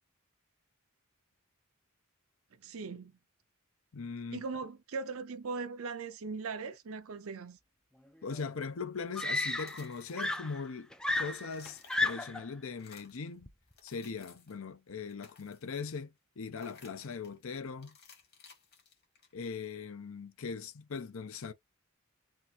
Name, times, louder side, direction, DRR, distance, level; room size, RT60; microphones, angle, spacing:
voice 1, 2.6-3.1 4.3-7.6, right 4 dB, 70° right, 0.6 m, -39 dB
voice 2, 3.9-4.4 8.2-13.5 13.8-18.0 19.3-21.5, left 5 dB, 65° left, 0.6 m, -40 dB
Screaming, 8.3-8.4 9.1-9.9 10.2-12.5 13.5-13.7, left 2 dB, 5° left, 0.4 m, -33 dB
sound 1, 9.4-10.8 11.1-12.4 12.7-13.3 13.7-14.6 15.0-15.8 16.5-17.4 17.8-19.5, left 5 dB, 50° left, 1.9 m, -58 dB
3.8 x 2.5 x 4.3 m
head